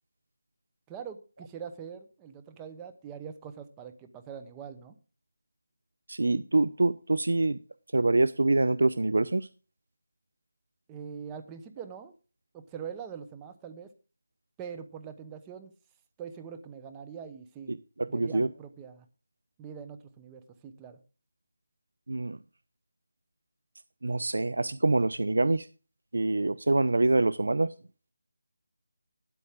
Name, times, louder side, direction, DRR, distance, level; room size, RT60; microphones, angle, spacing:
voice 1, 0.9-5.0 10.9-12.1 12.5-13.9 14.6-15.7 16.2-17.7 18.1-19.1 19.6-21.0, right 7 dB, 10° right, 8 dB, 0.9 m, -43 dB
voice 2, 6.1-7.6 7.9-9.5 17.7-18.5 22.1-22.4 24.0-25.7 26.1-27.7, right 2 dB, 80° right, 17 dB, 0.6 m, -25 dB
13.0 x 9.9 x 3.6 m, 0.35 s
figure-of-eight pair, 170°, 0 cm